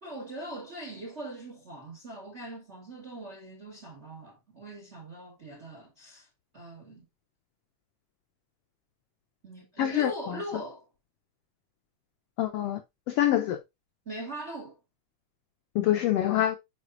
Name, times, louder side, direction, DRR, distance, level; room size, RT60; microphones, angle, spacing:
voice 1, 0.0-6.3 6.5-7.1 9.4-10.9 14.0-14.8, right 1 dB, 45° right, 0.8 m, -41 dB
voice 2, 9.8-10.4 12.4-12.8 13.1-13.6 15.7-16.6, left 12 dB, 90° left, 1.3 m, -25 dB
8.2 x 4.9 x 2.5 m
omnidirectional pair, 3.5 m